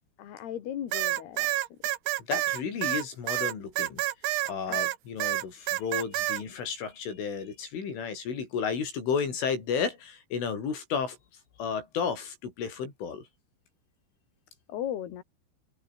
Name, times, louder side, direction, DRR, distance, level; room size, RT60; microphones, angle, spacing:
voice 1, 0.2-1.5 4.7-4.8 14.7-15.2, left 10 dB, 60° left, 4.1 m, -36 dB
sound 1, 0.9-5.0 5.2-6.4, right 16 dB, 80° right, 3.4 m, -28 dB
voice 2, 2.3-4.0 4.5-11.2 11.6-13.3, left 6 dB, 85° left, 8.3 m, -32 dB
omnidirectional pair, 5.5 m